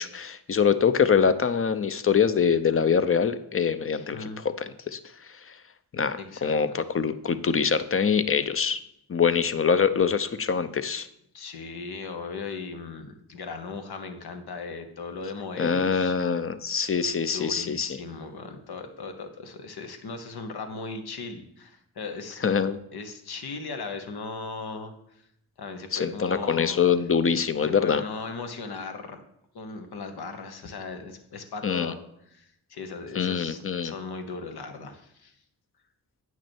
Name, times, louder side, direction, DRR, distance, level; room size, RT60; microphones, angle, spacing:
voice 1, 0.0-4.3 4.6-5.0 5.9-8.8 9.1-11.1 15.6-17.9 22.4-22.8 25.9-28.0 31.6-31.9 33.1-33.9, left 6 dB, 35° left, 12 dB, 0.6 m, -24 dB
voice 2, 3.9-4.4 6.2-6.8 11.3-16.2 17.2-22.4 22.9-25.2 25.6-26.8 27.6-29.2 29.5-32.0 32.3-35.3, left 4 dB, 75° left, 6 dB, 1.1 m, -38 dB
8.9 x 6.0 x 4.5 m, 0.77 s
cardioid pair, 50°, 39 cm